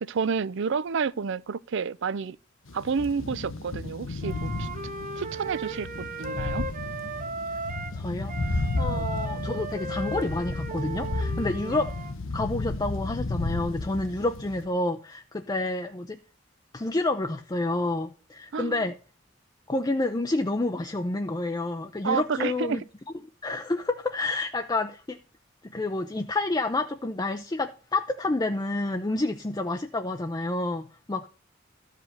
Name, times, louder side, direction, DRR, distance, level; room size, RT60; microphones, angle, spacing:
voice 1, 0.0-2.4 2.7-4.7 5.2-6.7 8.9-9.1 11.7-11.8 18.5-18.8 22.0-22.8, right 5 dB, 65° right, 0.5 m, -30 dB
sound 1, 2.7-14.7, left 2 dB, 85° left, 0.9 m, -33 dB
Wind instrument woodwind instrument, 4.2-8.0 8.3-12.1, right 3 dB, 40° right, 1.1 m, -36 dB
voice 2, 7.9-11.9 12.3-16.2 16.7-18.9 19.7-22.8 23.4-25.2 25.6-31.3, left 2 dB, 20° left, 0.5 m, -29 dB
13.0 x 5.0 x 6.6 m
head